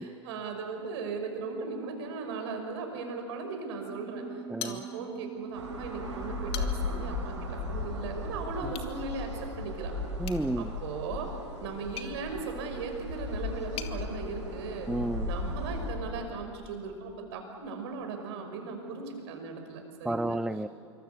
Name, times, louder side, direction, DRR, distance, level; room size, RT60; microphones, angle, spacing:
voice 1, 0.0-9.9 10.6-11.3 11.6-14.9 15.2-20.4, right 4 dB, 65° right, 4 dB, 5.8 m, -38 dB
sound 1, 3.8-9.8, right 7 dB, 20° right, 3.1 m, -45 dB
voice 2, 4.5-4.8 8.6-9.2 10.2-10.7 14.9-15.3 20.0-20.7, right 1 dB, 5° right, 14 dB, 0.5 m, -32 dB
sound 2, 4.6-5.3 5.7-5.8 6.3-7.0 8.7-8.9 10.2-14.0, left 9 dB, 40° left, 2.2 m, -44 dB
sound 3, 5.5-15.9, left 2 dB, 85° right, 7.6 m, -36 dB
26.5 x 24.5 x 7.0 m, 2.5 s
hypercardioid pair, 90°, 15 cm